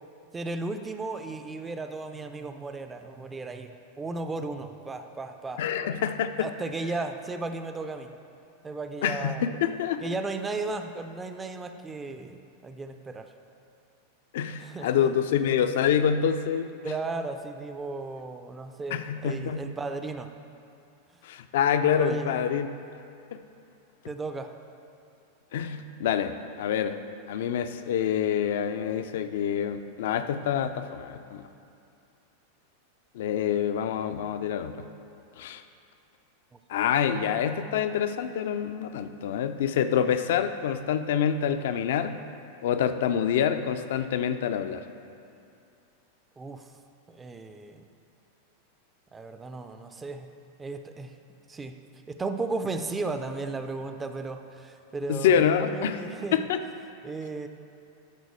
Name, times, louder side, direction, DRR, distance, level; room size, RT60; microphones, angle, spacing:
voice 1, 0.3-5.6 6.4-8.1 8.6-9.4 10.0-13.3 14.6-15.1 16.8-20.3 21.9-22.4 24.1-24.5 46.4-46.7 47.1-47.9 49.1-50.3 50.6-51.2 51.5-51.8 52.1-56.4 57.0-57.5, right 3 dB, 15° right, 7 dB, 0.4 m, -35 dB
voice 2, 5.6-6.5 9.0-10.1 14.3-16.9 18.9-19.6 21.2-22.7 25.5-27.0 27.3-31.5 33.1-34.8 35.4-35.6 36.7-42.1 42.6-44.8 55.1-56.0 56.3-56.6, left 8 dB, 55° left, 10 dB, 0.4 m, -26 dB
12.0 x 4.0 x 4.6 m, 2.6 s
figure-of-eight pair, 90°, 0 cm